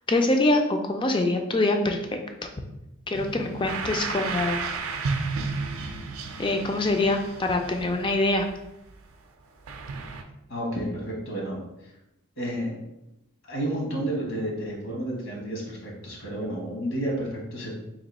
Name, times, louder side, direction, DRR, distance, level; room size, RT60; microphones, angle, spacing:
voice 1, 0.1-2.0 3.1-4.6 6.4-8.5, left 2 dB, 25° left, 4 dB, 0.3 m, -24 dB
sound 1, 3.1-9.1 9.7-10.2, right 4 dB, 80° right, 0.4 m, -33 dB
voice 2, 10.5-11.9 12.4-12.8 13.4-17.7, right 1 dB, 70° left, -2 dB, 1.1 m, -31 dB
3.0 x 2.6 x 4.1 m, 0.91 s
head